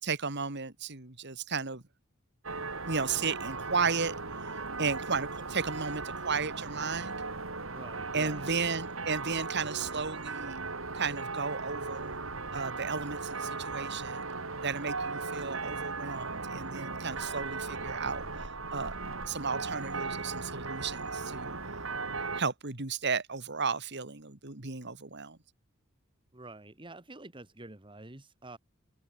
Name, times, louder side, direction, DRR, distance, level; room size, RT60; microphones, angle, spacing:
voice 1, 0.0-1.8 2.6-4.5 4.8-7.2 8.1-10.6 10.9-12.2 12.5-14.3 14.6-18.2 18.7-19.0 19.3-21.6 22.3-25.4, right 5 dB, 55° right, 2.4 m, -34 dB
sound 1, 2.4-22.4, right 3 dB, 75° right, 3.8 m, -37 dB
voice 2, 7.7-8.5 26.3-28.6, right 2 dB, 25° right, 1.8 m, -47 dB
head